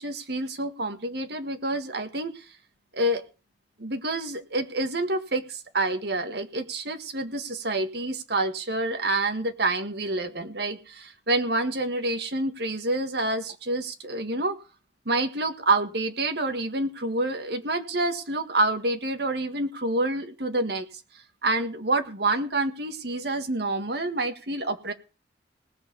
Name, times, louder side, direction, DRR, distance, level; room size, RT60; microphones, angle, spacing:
voice 1, 0.0-2.3 2.9-3.2 3.8-14.5 15.0-20.8 21.4-24.9, right 2 dB, 60° right, 8 dB, 1.7 m, -27 dB
18.5 x 6.7 x 6.8 m, 0.34 s
head